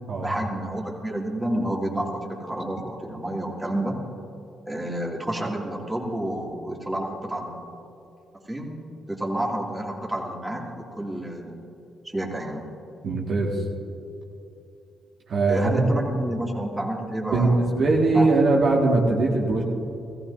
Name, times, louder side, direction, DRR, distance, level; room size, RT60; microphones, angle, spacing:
voice 1, 0.2-4.0 4.7-7.7 8.5-8.7 9.1-11.6 12.0-12.7 15.5-17.7 18.1-18.5, right 1 dB, 10° right, -2 dB, 2.6 m, -30 dB
voice 2, 13.0-13.6 15.3-15.9 17.3-19.6, right 3 dB, 60° right, -3 dB, 2.0 m, -21 dB
17.0 x 15.0 x 2.7 m, 2.8 s
hypercardioid pair, 50°, 0 cm